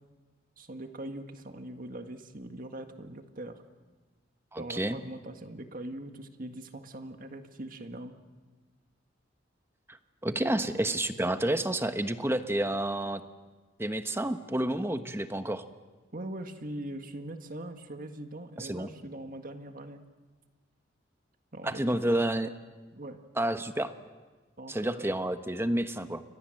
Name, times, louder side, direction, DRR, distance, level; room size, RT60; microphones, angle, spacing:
voice 1, 0.6-3.6 4.6-8.2 10.3-10.7 16.1-20.0 21.5-22.0 22.9-23.2 24.6-25.1, right 1 dB, 45° right, 6 dB, 1.8 m, -41 dB
voice 2, 4.5-5.0 9.9-10.0 10.2-13.2 13.8-15.6 18.6-18.9 21.6-22.5 23.4-23.9 24.7-26.2, right 1 dB, 15° right, 9 dB, 1.2 m, -30 dB
29.5 x 23.5 x 7.8 m, 1.3 s
head